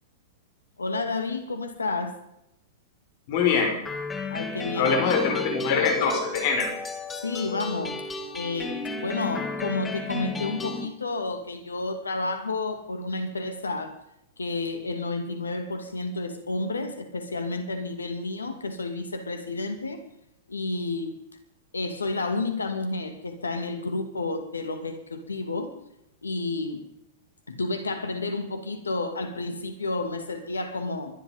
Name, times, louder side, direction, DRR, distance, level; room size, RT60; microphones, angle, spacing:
voice 1, 0.8-2.2 4.3-4.9 7.2-8.1 8.3-14.0 14.4-20.0 20.5-21.2 21.7-25.7 26.2-26.9 27.5-31.1, left 3 dB, 90° left, 8 dB, 2.5 m, -31 dB
voice 2, 3.3-3.8 4.7-6.7, left 5 dB, 55° left, 3 dB, 5.8 m, -23 dB
sound 1, 3.9-10.9, left 3 dB, 15° left, 2.3 m, -33 dB
24.0 x 11.0 x 5.4 m, 0.81 s
hypercardioid pair, 105°, 0 cm